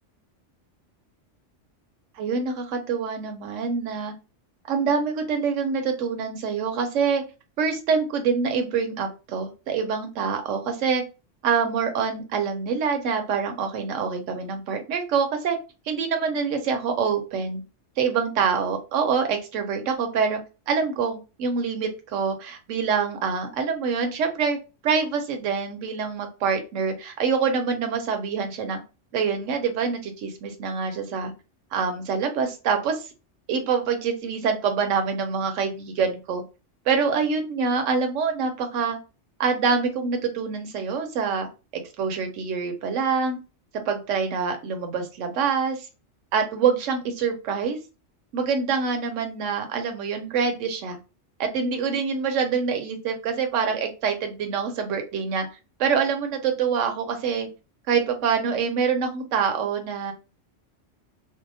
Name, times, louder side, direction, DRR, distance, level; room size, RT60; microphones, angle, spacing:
voice 1, 2.2-4.1 4.7-7.2 7.6-11.0 11.4-15.6 15.9-17.6 18.0-20.4 20.7-24.6 24.8-28.8 29.1-31.3 31.7-33.1 33.5-36.4 36.9-39.0 39.4-41.5 41.7-43.4 43.7-45.9 46.3-47.8 48.3-51.0 51.4-55.5 55.8-57.5 57.9-60.1, right 5 dB, 85° right, 5 dB, 1.0 m, -25 dB
2.7 x 2.0 x 2.6 m, 0.30 s
omnidirectional pair, 1.2 m